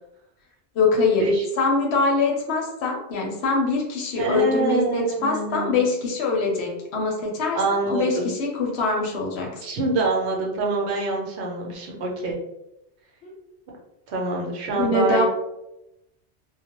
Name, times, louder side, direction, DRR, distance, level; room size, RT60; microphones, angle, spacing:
voice 1, 0.7-1.3 1.6-9.6 13.2-13.3 14.8-15.2, left 3 dB, 70° left, 0 dB, 0.8 m, -23 dB
voice 2, 4.2-5.9 7.5-8.3 9.6-12.4 14.1-15.2, right 2 dB, 70° right, -1 dB, 0.9 m, -25 dB
2.2 x 2.0 x 2.8 m, 0.88 s
omnidirectional pair, 1.2 m